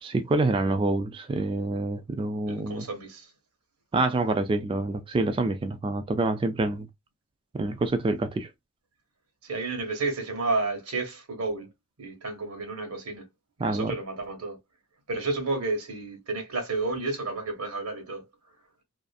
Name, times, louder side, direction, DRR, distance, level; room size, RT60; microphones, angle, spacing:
voice 1, 0.0-2.9 3.9-6.9 7.5-8.5 13.6-13.9, right 2 dB, 25° right, 0.3 m, -27 dB
voice 2, 2.5-3.3 9.4-11.7 12.0-13.2 13.6-14.6 15.1-18.2, right 3 dB, 90° right, 1.0 m, -31 dB
2.5 x 2.5 x 2.3 m
head